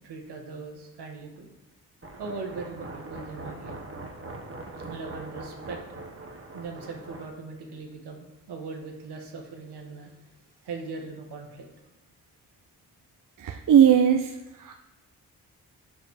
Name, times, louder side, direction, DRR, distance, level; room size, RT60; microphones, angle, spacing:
voice 1, 0.0-1.5 2.2-3.8 4.9-5.8 6.5-10.3 10.6-11.7, right 4 dB, 70° right, 2 dB, 1.5 m, -39 dB
sound 1, 2.0-7.3, right 2 dB, 30° right, 1.3 m, -41 dB
voice 2, 13.4-14.3 14.6-14.8, right 9 dB, 50° right, 5 dB, 0.6 m, -19 dB
5.2 x 5.2 x 6.4 m, 0.96 s
supercardioid pair, 45°, 41 cm